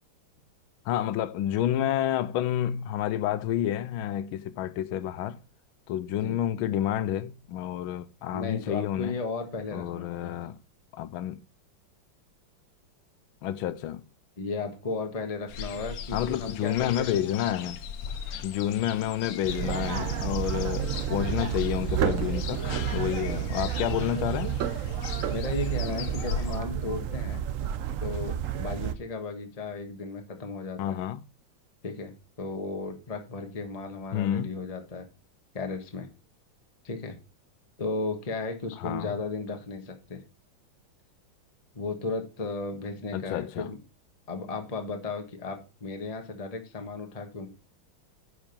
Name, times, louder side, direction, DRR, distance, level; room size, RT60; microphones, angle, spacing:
voice 1, 0.8-5.4 5.9-9.2 9.7-10.6 10.9-11.4 13.4-14.0 16.1-17.8 18.4-24.6 30.8-31.2 34.1-34.6 38.8-39.1 43.1-43.7, left 11 dB, 80° left, 1.5 m, -29 dB
voice 2, 8.3-10.3 14.4-17.2 23.3-23.5 25.3-27.4 28.0-31.0 31.8-35.0 35.5-36.1 36.8-37.1 37.8-40.2 41.7-43.8 44.3-47.5, left 3 dB, 20° left, 1.2 m, -35 dB
sound 1, 15.5-26.6, left 7 dB, 65° left, 0.9 m, -39 dB
sound 2, 19.4-28.9, right 9 dB, 80° right, 0.7 m, -30 dB
10.0 x 5.1 x 5.3 m
omnidirectional pair, 2.3 m